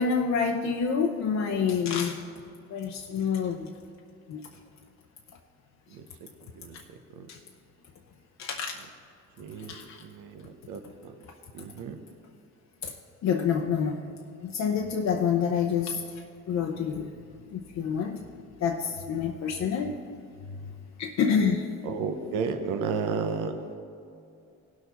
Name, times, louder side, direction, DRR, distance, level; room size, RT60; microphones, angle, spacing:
voice 1, 0.0-2.3 2.7-3.7 4.3-4.4 7.3-7.4 8.4-8.8 9.6-10.0 10.8-10.9 12.8-12.9 13.2-14.0 14.4-17.1 17.5-18.2 18.6-20.0 20.5-20.7 21.0-21.7, left 6 dB, 65° left, 3 dB, 0.7 m, -28 dB
voice 2, 9.4-10.4 10.7-11.1 11.5-12.0 21.8-23.5, right 5 dB, 85° right, 7 dB, 0.8 m, -32 dB
17.0 x 6.3 x 4.1 m, 2.5 s
cardioid pair, 90°, 30 cm